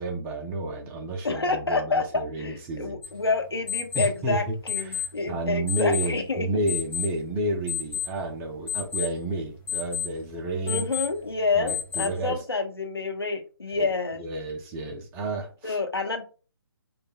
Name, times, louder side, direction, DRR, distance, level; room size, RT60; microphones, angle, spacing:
voice 1, 0.0-3.0 3.9-4.5 4.8-10.9 11.5-12.4 13.7-13.9 14.1-15.8, right 1 dB, 15° right, 1 dB, 0.5 m, -31 dB
voice 2, 1.2-6.5 10.7-14.2 15.6-16.2, left 3 dB, 90° left, 5 dB, 0.9 m, -28 dB
sound 1, 3.0-12.3, left 9 dB, 10° left, 1.1 m, -34 dB
4.7 x 2.6 x 2.3 m, 0.35 s
figure-of-eight pair, 150°, 13 cm